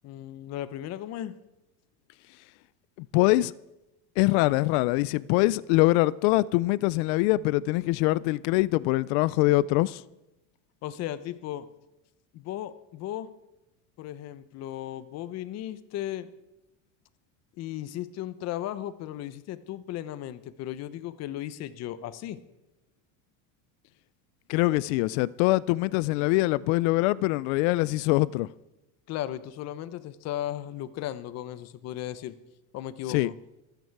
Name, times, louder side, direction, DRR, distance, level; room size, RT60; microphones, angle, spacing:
voice 1, 0.0-1.4 10.8-11.7 12.3-13.3 14.0-16.3 17.6-22.4 29.1-32.4 32.7-33.3, left 12 dB, 35° left, 0.9 m, -36 dB
voice 2, 3.0-3.5 4.2-10.0 24.5-28.5 33.1-33.3, left 19 dB, 55° left, 0.4 m, -23 dB
26.0 x 9.2 x 4.7 m
supercardioid pair, 150°, 44 cm